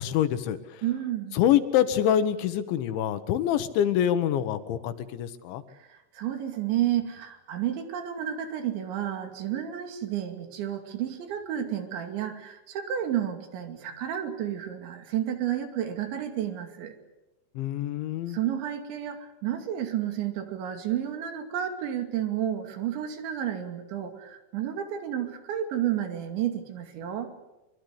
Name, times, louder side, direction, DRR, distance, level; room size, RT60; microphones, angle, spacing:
voice 1, 0.0-0.8 1.3-5.6 17.6-18.4, left 10 dB, 75° left, 12 dB, 3.4 m, -25 dB
voice 2, 0.8-1.4 5.7-16.9 18.3-27.3, right 11 dB, 70° right, 6 dB, 4.7 m, -31 dB
24.0 x 24.0 x 8.1 m, 0.98 s
omnidirectional pair, 5.6 m